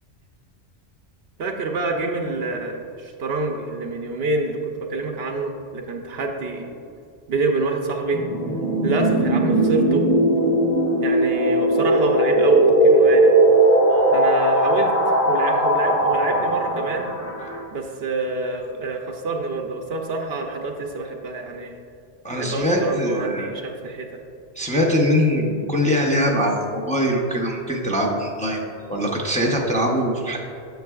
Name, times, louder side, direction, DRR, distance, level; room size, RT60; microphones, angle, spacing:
voice 1, 1.4-4.6 4.9-6.7 7.3-8.2 8.8-10.1 11.0-13.3 14.1-17.1 17.7-21.7 22.3-24.1, right 3 dB, 65° right, 3 dB, 0.8 m, -27 dB
sound 1, 8.1-17.6, right 1 dB, 35° left, 1.2 m, -18 dB
voice 2, 22.2-23.5 24.6-28.6 28.9-30.4, equal, 10° left, -2 dB, 0.6 m, -22 dB
9.2 x 6.9 x 2.3 m, 2.7 s
omnidirectional pair, 1.2 m